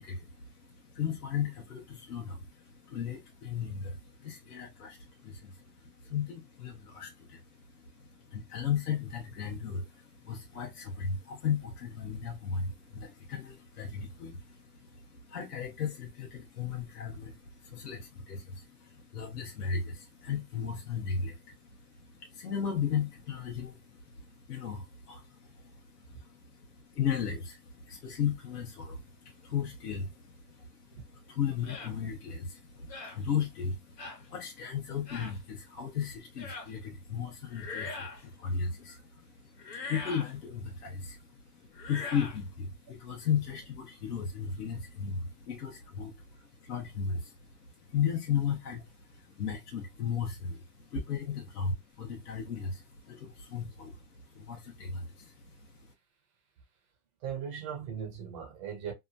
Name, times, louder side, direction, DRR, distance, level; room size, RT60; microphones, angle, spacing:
voice 1, 0.0-47.4 47.8-55.9, left 7 dB, 70° left, 1.0 m, -36 dB
sound 1, 31.6-31.9 32.9-33.2 34.0-34.2 35.1-35.4 36.4-36.7 37.5-38.2 39.6-40.3 41.7-42.4, left 4 dB, 90° left, 1.4 m, -41 dB
voice 2, 57.2-58.9, right 8 dB, 20° right, 0.5 m, -39 dB
2.9 x 2.3 x 2.5 m
hypercardioid pair, 150°, 48 cm